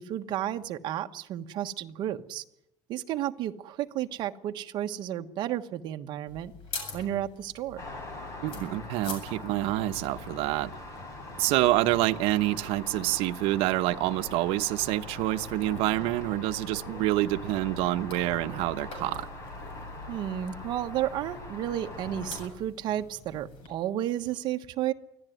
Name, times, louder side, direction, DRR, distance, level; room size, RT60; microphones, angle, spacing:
voice 1, 0.0-2.4 2.9-6.5 6.9-7.8 20.1-24.9, right 12 dB, 50° right, 1.3 m, -32 dB
sound 1, 6.3-23.7, left 4 dB, 65° left, 7.7 m, -48 dB
sound 2, 7.8-22.5, left 2 dB, 30° left, 5.1 m, -42 dB
voice 2, 8.4-10.7 11.4-19.3, right 16 dB, 80° right, 1.0 m, -27 dB
25.0 x 16.0 x 9.3 m
cardioid pair, 175°, 10 cm